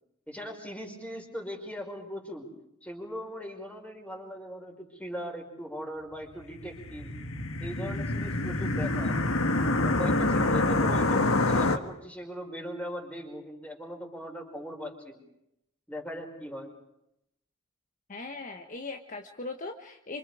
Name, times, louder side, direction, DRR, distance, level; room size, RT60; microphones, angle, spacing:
voice 1, 0.3-2.5 2.8-7.1 7.6-9.2 9.8-15.2 15.9-16.7, equal, 5° left, 2 dB, 5.2 m, -39 dB
sound 1, 6.6-11.8, left 2 dB, 70° left, 1.6 m, -26 dB
voice 2, 18.1-20.2, left 3 dB, 40° left, 4 dB, 1.3 m, -39 dB
28.0 x 26.5 x 5.0 m, 0.81 s
head